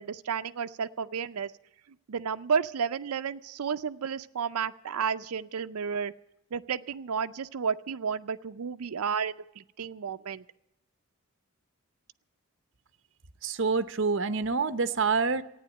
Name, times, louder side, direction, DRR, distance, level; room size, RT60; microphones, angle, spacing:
voice 1, 0.0-1.5 2.1-6.1 6.5-10.4, right 6 dB, 85° right, 10 dB, 0.5 m, -32 dB
voice 2, 13.4-15.4, right 4 dB, 55° right, 11 dB, 0.8 m, -27 dB
14.5 x 9.4 x 8.9 m, 0.86 s
head